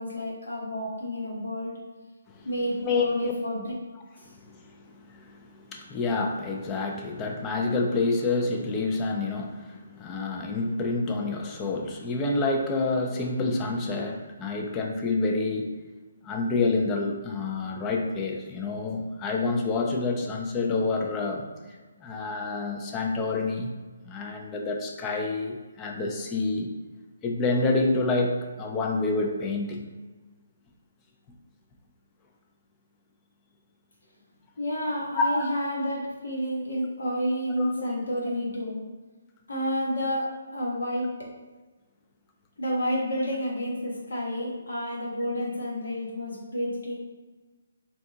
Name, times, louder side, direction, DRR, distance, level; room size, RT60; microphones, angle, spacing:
voice 1, 0.0-1.7 2.4-3.6 34.6-38.8 39.5-41.1 42.6-46.9, equal, 80° left, -4 dB, 1.2 m, -30 dB
voice 2, 4.2-15.7 16.2-21.5 22.0-23.7 24.0-26.7 27.2-29.8 35.3-35.5 37.6-38.0, left 3 dB, 20° left, 2 dB, 0.4 m, -28 dB
2.7 x 2.3 x 3.7 m, 1.3 s
hypercardioid pair, 155°, 0 cm